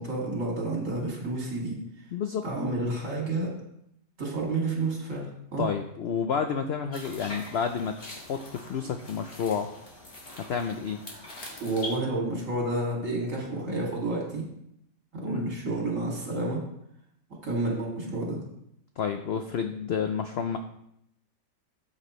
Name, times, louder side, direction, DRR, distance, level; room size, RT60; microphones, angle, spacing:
voice 1, 0.0-1.8 2.4-3.5 4.2-5.6 11.6-14.5 15.1-16.6 17.4-18.4, right 2 dB, 50° right, -2 dB, 2.7 m, -30 dB
voice 2, 2.1-2.4 5.6-8.0 8.3-9.7 10.5-11.0 15.2-15.4 19.0-20.6, left 6 dB, 75° left, 6 dB, 0.5 m, -30 dB
sound 1, 6.9-12.0, left 1 dB, 35° left, 1.9 m, -43 dB
13.0 x 6.7 x 3.1 m, 0.76 s
omnidirectional pair, 1.7 m